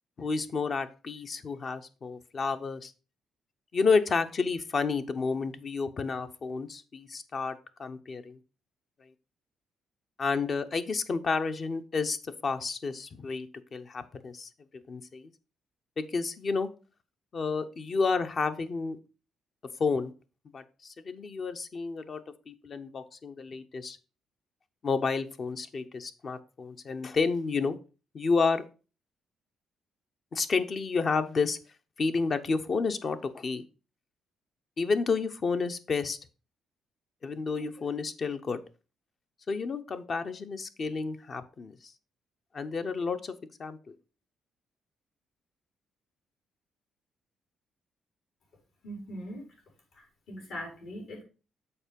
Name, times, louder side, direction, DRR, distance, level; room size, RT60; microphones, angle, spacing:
voice 1, 0.2-2.9 3.7-8.4 10.2-12.2 12.4-14.5 14.9-15.3 16.0-16.7 17.3-19.0 19.8-20.1 20.5-22.2 22.5-24.0 24.8-27.8 28.1-28.6 30.3-31.6 32.0-33.6 34.8-36.2 37.2-38.6 39.5-41.8 42.5-43.3 43.6-43.8, left 4 dB, 45° left, 9 dB, 0.8 m, -30 dB
voice 2, 48.8-49.5 49.9-51.2, equal, 75° left, -2 dB, 4.7 m, -41 dB
7.0 x 4.6 x 5.2 m, 0.34 s
cardioid pair, 90°, 0 cm